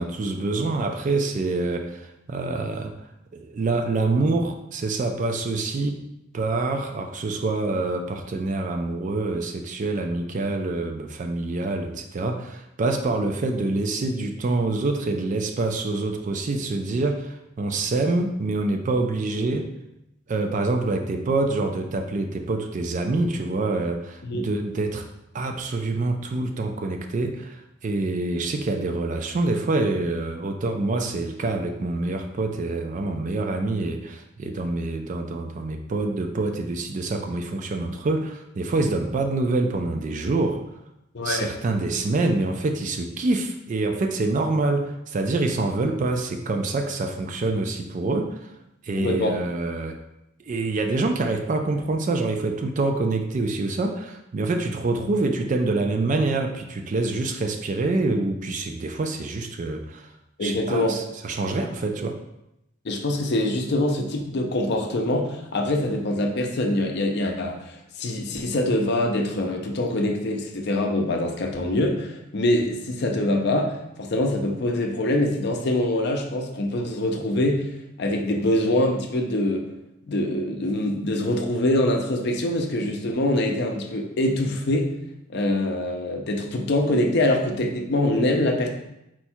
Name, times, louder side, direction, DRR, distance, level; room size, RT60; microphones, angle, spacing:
voice 1, 0.0-2.9 3.3-6.0 6.3-19.7 20.3-25.0 25.3-40.6 41.2-48.5 48.8-50.0 50.5-60.1 60.4-62.2, right 2 dB, 35° right, 5 dB, 0.3 m, -26 dB
voice 2, 41.1-41.5 49.0-49.4 60.4-61.0 62.8-77.7 78.0-79.6 80.1-84.9 85.3-88.7, left 1 dB, 50° left, 2 dB, 0.5 m, -24 dB
4.4 x 2.3 x 4.3 m, 0.86 s
head